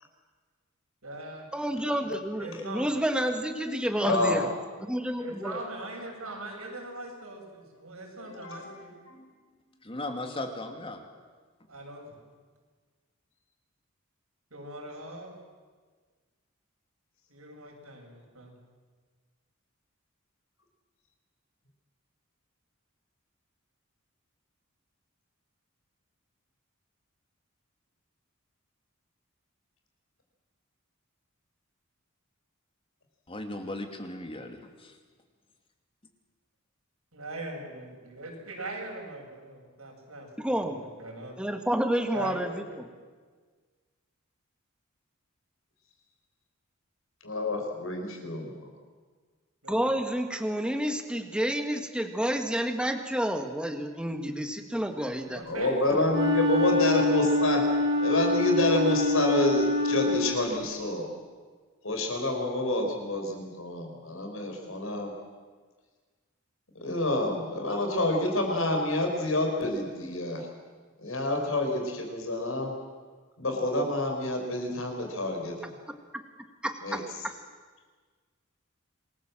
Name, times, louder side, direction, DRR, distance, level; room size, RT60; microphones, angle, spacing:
voice 1, 1.0-2.1 2.4-2.9 5.2-9.0 11.7-12.2 14.5-15.3 17.3-18.5 37.1-41.4 42.1-42.8 49.6-49.9 55.3-56.2 56.7-56.9, right 2 dB, 85° right, 0 dB, 7.2 m, -41 dB
voice 2, 1.5-4.5 4.8-5.6 40.4-40.8 41.4-42.9 49.7-55.4 76.6-77.0, equal, 5° right, 6 dB, 1.8 m, -29 dB
voice 3, 4.0-4.4 8.2-8.8 9.1-9.2 47.2-48.5 55.4-57.6 58.0-61.1 61.8-65.1 66.8-70.5 71.0-72.7 73.4-75.8 76.8-77.0, left 2 dB, 70° left, 2 dB, 5.4 m, -28 dB
voice 4, 9.8-11.0 33.3-34.9, left 2 dB, 25° left, 5 dB, 2.5 m, -37 dB
Wind instrument woodwind instrument, 56.1-60.6, left 2 dB, 60° right, 4.2 m, -26 dB
27.5 x 20.5 x 7.6 m, 1.5 s
head